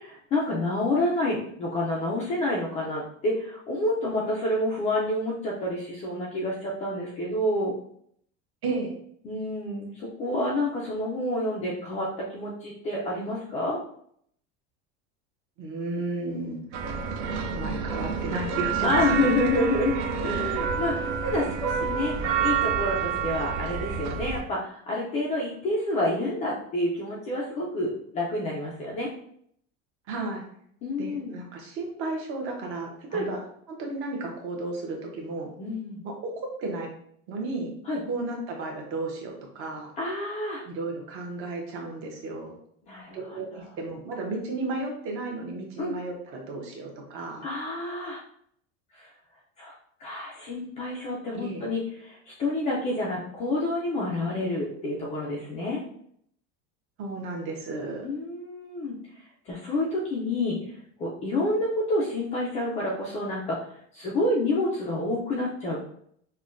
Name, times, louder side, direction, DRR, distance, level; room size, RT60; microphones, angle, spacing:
voice 1, 0.0-7.7 9.2-13.8 18.8-29.1 30.8-31.3 33.1-33.2 35.6-36.0 37.9-38.0 40.0-40.6 42.8-43.6 45.8-45.9 47.4-48.2 48.9-49.1 49.6-49.7 50.0-55.8 58.0-59.0 59.5-60.7 61.0-65.8, left 1 dB, 20° left, -4 dB, 0.3 m, -28 dB
voice 2, 8.6-8.9 15.6-16.9 17.3-19.4 30.1-30.4 31.0-35.5 36.0-36.9 37.3-37.7 38.1-39.9 40.7-42.6 43.1-47.4 51.3-51.7 57.0-58.1, right 2 dB, 40° right, 1 dB, 0.8 m, -33 dB
sound 1, 16.7-24.4, right 6 dB, 80° right, 0.7 m, -28 dB
5.5 x 2.2 x 2.4 m, 0.66 s
cardioid pair, 180°, 33 cm